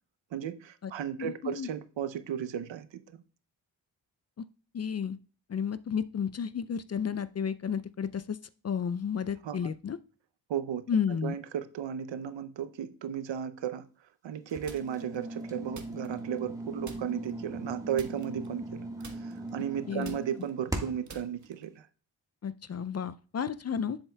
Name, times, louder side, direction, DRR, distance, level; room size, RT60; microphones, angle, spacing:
voice 1, 0.3-3.0 9.4-9.7 10.5-10.8 11.2-13.9 14.2-18.8 19.1-21.9, right 9 dB, 65° right, 12 dB, 0.7 m, -35 dB
voice 2, 1.2-1.7 4.7-5.2 5.5-8.4 8.6-10.0 10.9-11.4 19.9-20.2 22.4-24.0, left 7 dB, 35° left, 15 dB, 0.4 m, -32 dB
sound 1, 14.5-21.2, right 1 dB, 5° right, 1.5 m, -39 dB
sound 2, 14.7-15.2 15.7-16.5 16.8-17.3 17.9-18.7 19.0-21.8, right 4 dB, 35° right, 1.2 m, -50 dB
7.4 x 7.0 x 2.3 m, 0.38 s
supercardioid pair, 40°, 47 cm